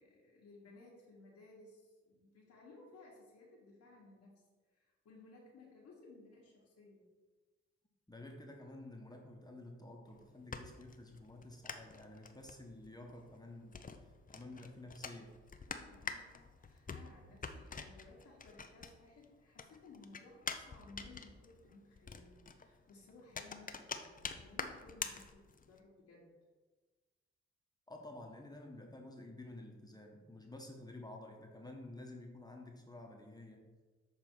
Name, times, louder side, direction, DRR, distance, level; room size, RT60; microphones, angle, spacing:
voice 1, 0.0-4.4 4.7-7.1 15.7-26.3, left 3 dB, 70° left, -6 dB, 1.4 m, -59 dB
voice 2, 8.1-13.8 14.3-15.4 27.9-33.7, left 2 dB, 15° left, 1 dB, 1.2 m, -51 dB
sound 1, 10.1-19.2 19.5-25.8, left 5 dB, 30° left, 0.6 m, -46 dB
6.9 x 3.4 x 4.5 m, 1.3 s
supercardioid pair, 50°, 29 cm